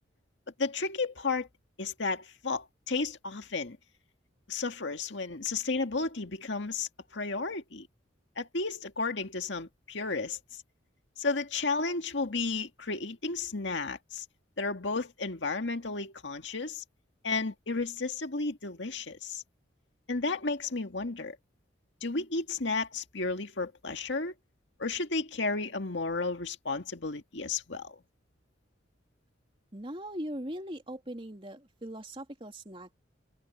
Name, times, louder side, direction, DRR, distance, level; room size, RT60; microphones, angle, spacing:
voice 1, 0.6-1.5 1.8-3.8 4.5-7.9 8.4-10.6 11.2-14.3 14.6-16.8 17.2-19.4 20.1-21.4 22.0-24.3 24.8-28.0, left 3 dB, 70° left, 1.9 m, -33 dB
voice 2, 29.7-33.0, right 1 dB, 30° right, 2.9 m, -40 dB
head